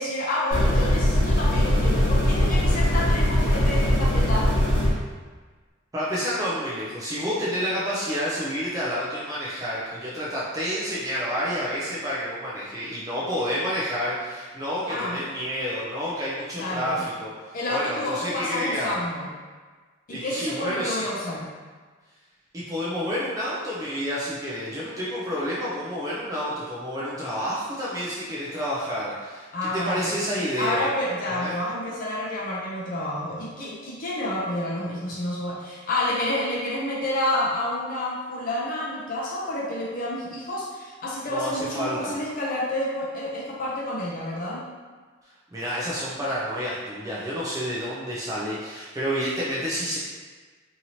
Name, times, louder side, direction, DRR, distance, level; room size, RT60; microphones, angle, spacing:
voice 1, 0.0-4.5 14.9-15.2 16.6-17.0 17.5-19.3 20.1-21.4 29.5-30.2 30.6-44.6, left 1 dB, 45° left, -5 dB, 0.5 m, -29 dB
sound 1, 0.5-4.9, left 1 dB, 80° left, 1.0 m, -21 dB
voice 2, 5.9-19.0 20.1-21.0 22.5-30.9 31.3-31.6 41.3-42.1 45.5-50.0, equal, 15° right, -7 dB, 0.4 m, -29 dB
2.9 x 2.7 x 2.7 m, 1.4 s
head